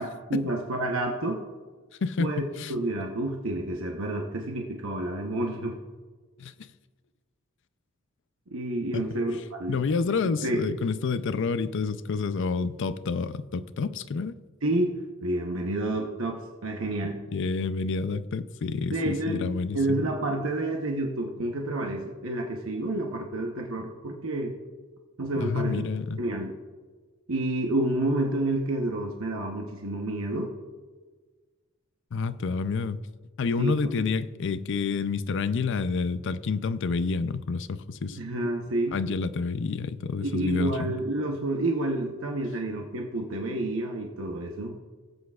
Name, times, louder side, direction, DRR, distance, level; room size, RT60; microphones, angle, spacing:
voice 1, 0.0-1.4 2.2-2.4 2.7-5.8 8.5-9.8 10.1-10.7 14.6-14.9 15.2-17.2 18.9-24.5 25.2-25.9 26.2-26.5 27.3-30.5 33.6-34.0 38.1-39.0 40.2-44.8, right 1 dB, 75° right, 1 dB, 0.9 m, -29 dB
voice 2, 2.0-2.7 6.4-6.7 8.9-9.1 9.7-14.3 17.3-20.0 25.4-26.2 32.1-33.0 33.4-38.2 38.9-40.9, left 4 dB, 60° left, 13 dB, 0.5 m, -29 dB
18.0 x 8.2 x 2.4 m, 1.4 s
head